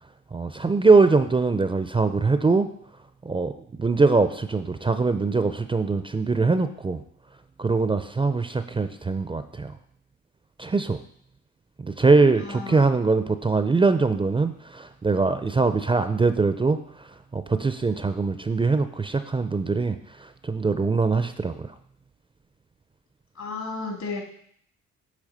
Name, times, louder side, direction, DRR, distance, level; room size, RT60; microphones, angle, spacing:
voice 1, 0.3-2.7 3.2-3.5 3.8-7.0 7.6-9.7 10.6-11.0 11.8-16.8 17.3-20.0 20.2-21.7, right 4 dB, 15° right, 9 dB, 0.4 m, -22 dB
voice 2, 12.4-12.9 23.4-24.2, left 4 dB, 65° left, 1 dB, 2.3 m, -33 dB
8.4 x 3.3 x 6.6 m, 0.66 s
cardioid pair, 90°, 30 cm